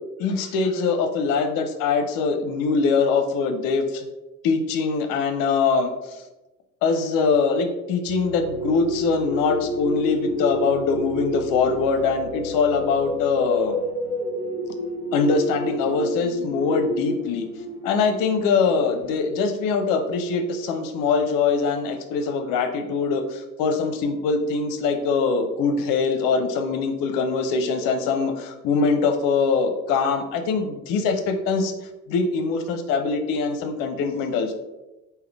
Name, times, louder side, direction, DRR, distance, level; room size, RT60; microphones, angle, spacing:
voice 1, 0.2-4.0 4.4-6.2 6.8-13.8 15.1-17.5 17.8-31.8 32.1-34.5, left 4 dB, 50° left, 6 dB, 0.6 m, -23 dB
sound 1, 8.1-19.1, equal, 90° right, 0.6 m, -30 dB
3.8 x 2.7 x 3.2 m, 1.0 s
figure-of-eight pair, 60°, 45 cm